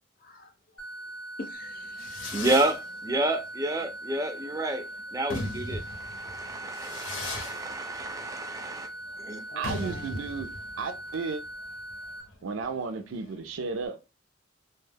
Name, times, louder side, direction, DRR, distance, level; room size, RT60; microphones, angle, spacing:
voice 1, 0.2-0.5 1.4-2.4 9.5-10.3, left 1 dB, 45° left, 0.5 m, -44 dB
sound 1, 0.8-12.2, right 1 dB, 20° left, 0.8 m, -41 dB
Fireworks, 1.6-13.8, left 2 dB, 80° left, 0.7 m, -40 dB
voice 2, 2.3-8.9 9.2-9.4, right 2 dB, 15° right, 0.4 m, -30 dB
voice 3, 9.5-10.5 10.8-11.4 12.4-14.0, right 4 dB, 85° right, 0.4 m, -33 dB
2.2 x 2.1 x 3.3 m
head